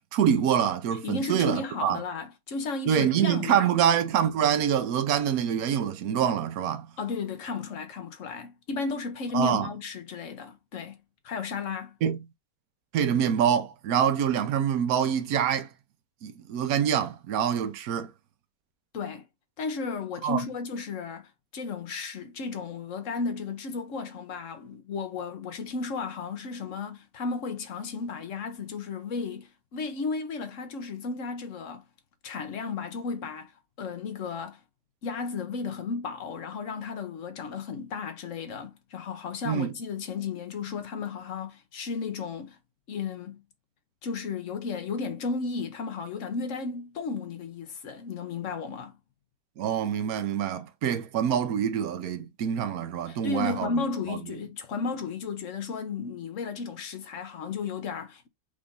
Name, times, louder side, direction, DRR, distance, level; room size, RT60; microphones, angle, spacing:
voice 1, 0.1-2.0 2.9-6.9 9.3-9.7 12.0-12.2 12.9-15.7 16.2-18.1 20.2-20.4 39.4-39.7 49.6-53.8 54.1-54.2, right 9 dB, 65° right, 1.0 m, -25 dB
voice 2, 1.0-3.8 7.0-11.0 11.2-11.9 18.9-19.2 19.6-31.8 32.2-34.6 35.0-42.6 42.9-43.4 44.0-49.0 53.1-58.3, left 4 dB, 55° left, 0.9 m, -34 dB
5.0 x 2.6 x 3.5 m
omnidirectional pair, 2.0 m